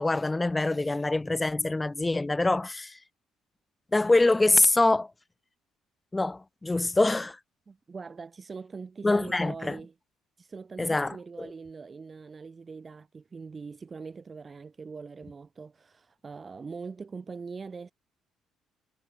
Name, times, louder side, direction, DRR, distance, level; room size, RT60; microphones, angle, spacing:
voice 1, 0.0-3.0 3.9-5.1 6.1-7.4 9.0-9.8 10.8-11.5, left 2 dB, 20° left, 0.4 m, -25 dB
voice 2, 7.7-9.9 10.4-17.9, right 4 dB, 35° right, 3.1 m, -42 dB
hypercardioid pair, 50°, 0 cm